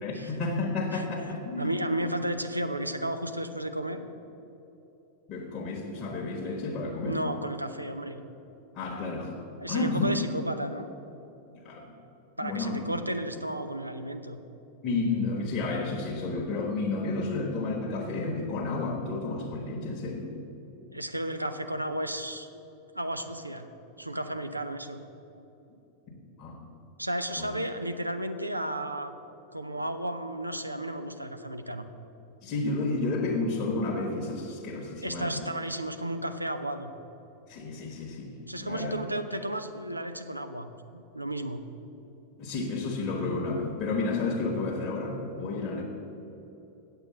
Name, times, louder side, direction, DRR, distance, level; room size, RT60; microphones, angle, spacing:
voice 1, 0.0-1.7 5.3-7.2 8.7-9.3 9.7-10.1 11.5-11.9 12.4-12.8 14.8-20.3 26.1-26.6 27.4-27.5 32.4-35.5 37.5-38.3 38.6-39.0 42.4-45.8, left 3 dB, 30° left, -3 dB, 1.3 m, -31 dB
voice 2, 1.6-4.1 7.0-8.2 9.6-10.9 12.4-14.4 20.9-22.6 22.9-23.7 24.0-25.0 27.0-29.1 29.5-31.8 35.0-36.9 38.5-41.6, right 1 dB, 85° right, 8 dB, 0.6 m, -33 dB
8.8 x 6.9 x 7.2 m, 3.0 s
figure-of-eight pair, 90°, 0 cm